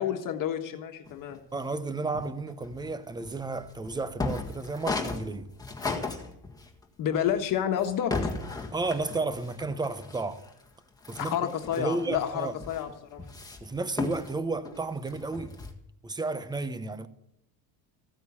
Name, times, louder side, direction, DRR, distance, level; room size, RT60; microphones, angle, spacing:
voice 1, 0.0-1.4 7.0-8.3 11.2-13.2, left 9 dB, 50° left, 1.5 m, -30 dB
sound 1, 1.1-1.8 2.1-6.8 7.3-10.7 11.0-15.7, left 3 dB, 10° left, 1.7 m, -36 dB
voice 2, 1.5-5.5 8.7-10.4 11.1-11.3 11.8-12.6 13.6-15.5 16.0-17.1, right 3 dB, 10° right, 0.8 m, -32 dB
15.0 x 9.1 x 8.5 m
cardioid pair, 155°, 40 cm